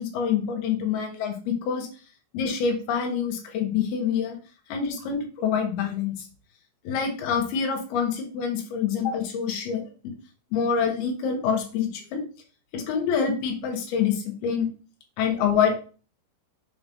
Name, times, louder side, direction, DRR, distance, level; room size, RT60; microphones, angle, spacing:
voice 1, 0.0-1.9 2.3-4.4 4.7-6.1 6.8-9.8 10.5-12.2 12.7-14.7 15.2-15.8, left 7 dB, 65° left, 3 dB, 2.9 m, -26 dB
7.3 x 3.0 x 5.2 m, 0.37 s
omnidirectional pair, 5.4 m